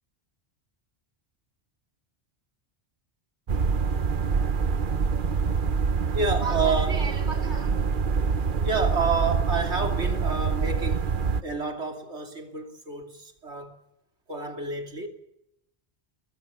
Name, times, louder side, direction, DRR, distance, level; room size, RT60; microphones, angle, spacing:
sound 1, 3.5-11.4, right 5 dB, 50° right, 1.1 m, -25 dB
voice 1, 6.1-7.7 8.6-11.0 11.4-13.8 14.3-15.1, right 4 dB, 85° right, 3.3 m, -29 dB
30.0 x 21.0 x 5.7 m
omnidirectional pair, 1.1 m